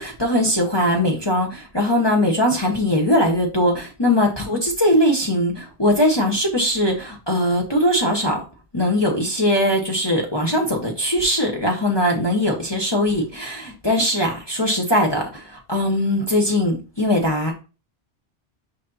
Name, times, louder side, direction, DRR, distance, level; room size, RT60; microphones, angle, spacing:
voice 1, 0.0-8.4 8.7-17.5, left 1 dB, 25° left, -1 dB, 1.2 m, -20 dB
6.3 x 5.7 x 2.7 m, 0.31 s
omnidirectional pair, 1.1 m